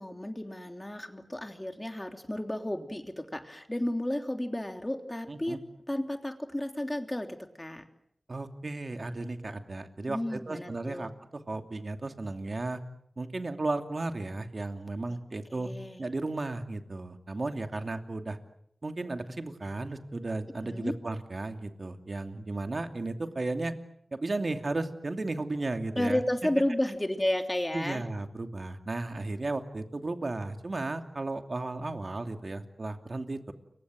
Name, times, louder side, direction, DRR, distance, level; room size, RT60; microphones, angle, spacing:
voice 1, 0.0-5.6 5.9-7.8 10.1-11.1 15.5-16.1 20.6-21.0 25.9-28.0, left 1 dB, 20° left, 6 dB, 3.1 m, -32 dB
voice 2, 5.3-5.6 8.3-12.8 13.2-15.7 16.0-18.4 18.8-23.7 24.1-26.2 27.7-33.5, right 2 dB, 55° right, 6 dB, 2.7 m, -34 dB
29.5 x 24.0 x 7.7 m, 0.72 s
wide cardioid pair, 65°, 0 cm